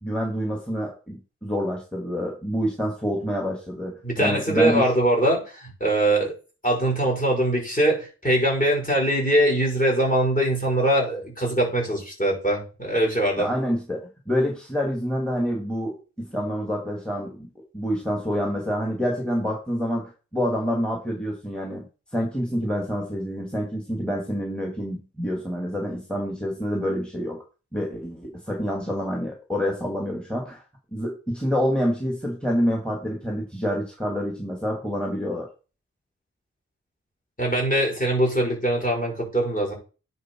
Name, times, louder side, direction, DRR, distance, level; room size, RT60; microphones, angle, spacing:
voice 1, 0.0-4.9 13.4-17.5 17.7-21.9 22.1-27.4 27.7-30.6 30.9-35.5, equal, 5° left, 0 dB, 2.4 m, -27 dB
voice 2, 4.0-6.3 6.6-13.5 37.4-39.7, right 1 dB, 30° left, 1 dB, 5.6 m, -22 dB
10.0 x 4.7 x 4.6 m, 0.33 s
wide cardioid pair, 80°, 29 cm